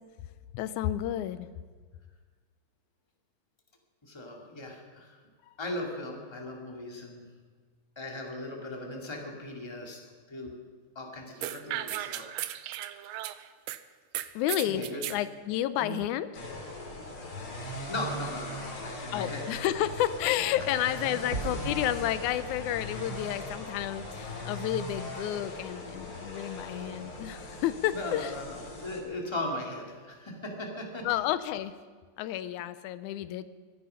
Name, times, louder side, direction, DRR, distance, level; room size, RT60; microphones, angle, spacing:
voice 1, 0.5-1.5 14.4-14.8 15.1-16.3 19.1-28.4 31.0-31.8 32.2-33.4, left 12 dB, 90° left, 14 dB, 2.1 m, -31 dB
voice 2, 4.0-5.2 5.6-7.2 8.0-10.0 10.3-10.5 11.0-12.2 12.8-12.9 14.6-15.0 15.8-16.0 17.9-19.4 27.9-31.1, left 1 dB, 10° left, 0 dB, 1.9 m, -38 dB
sound 1, 11.4-13.8 14.1-15.2, right 13 dB, 75° right, 1.6 m, -35 dB
sound 2, 16.3-29.0, left 1 dB, 45° left, 3.4 m, -40 dB
sound 3, 21.3-26.3 26.5-26.6, right 3 dB, 35° right, 2.0 m, -42 dB
23.5 x 10.0 x 5.7 m, 1.6 s
omnidirectional pair, 3.4 m